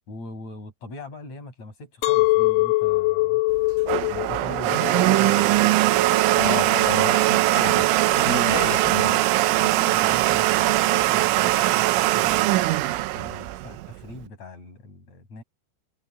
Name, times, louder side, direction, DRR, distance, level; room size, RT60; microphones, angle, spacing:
voice 1, 0.1-3.4 4.1-6.1 7.5-7.8 9.6-12.8 13.1-15.4, left 2 dB, 35° left, 8.9 m, -40 dB
Chink clink, 2.0-7.2, left 21 dB, 85° left, 4.2 m, -24 dB
Domestic sounds home sounds, 3.5-14.2, right 17 dB, 90° right, 3.4 m, -21 dB
voice 2, 6.4-7.9 8.1-9.2, left 4 dB, 55° left, 6.6 m, -30 dB
omnidirectional pair, 5.4 m